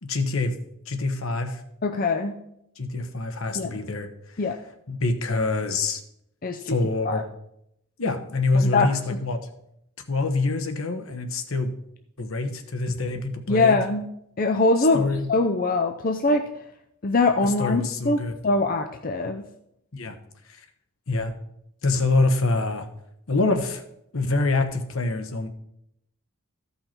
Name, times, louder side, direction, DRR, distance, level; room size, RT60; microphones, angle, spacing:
voice 1, 0.0-0.5 0.9-1.6 2.8-4.1 4.3-4.4 4.9-6.0 6.6-7.2 8.0-9.4 10.1-11.7 12.2-13.8 14.8-15.3 17.4-18.4 19.9-20.2 20.5-20.6 21.1-21.3 21.8-22.9 23.3-23.8 24.1-25.5, left 3 dB, 70° left, 7 dB, 1.1 m, -25 dB
voice 2, 1.8-2.4 3.6-3.7 4.4-4.5 6.4-6.8 7.0-7.2 8.5-8.9 13.5-14.1 14.4-16.5 17.0-19.4, left 3 dB, 40° left, 4 dB, 0.5 m, -23 dB
14.0 x 5.6 x 4.4 m, 0.78 s
head